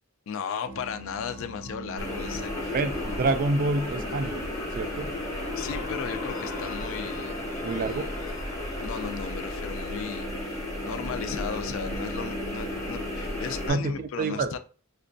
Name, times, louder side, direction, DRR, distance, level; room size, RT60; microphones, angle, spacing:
voice 1, 0.3-2.7 5.6-7.4 7.7-8.1 8.8-14.6, left 6 dB, 65° left, 0.4 m, -36 dB
sound 1, 0.6-14.0, right 1 dB, 90° right, 0.7 m, -42 dB
sound 2, 1.7-10.4, left 4 dB, 85° left, 0.8 m, -41 dB
sound 3, 2.0-13.7, left 1 dB, 15° left, 0.7 m, -34 dB
voice 2, 2.7-5.1 7.6-8.2 13.7-14.6, right 3 dB, 45° right, 0.3 m, -28 dB
4.9 x 2.2 x 2.6 m
head